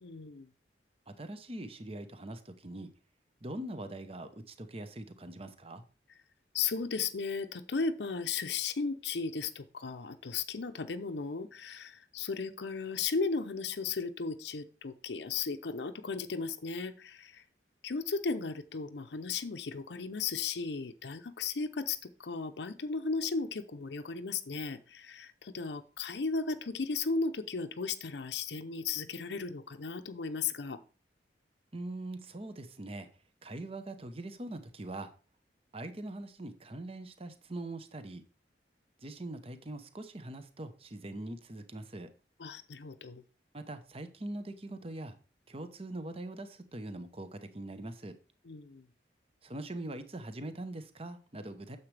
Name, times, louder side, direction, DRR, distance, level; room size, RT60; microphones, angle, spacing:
voice 1, 0.0-0.5 6.5-17.4 17.8-30.8 42.4-43.2 48.4-48.8, left 4 dB, 75° left, 8 dB, 0.6 m, -35 dB
voice 2, 1.1-2.9 3.4-5.8 31.7-33.1 33.4-35.1 35.7-38.2 39.0-42.1 43.5-45.1 45.5-48.2 49.4-51.8, right 1 dB, 35° right, 10 dB, 0.9 m, -42 dB
9.6 x 7.3 x 3.3 m, 0.36 s
head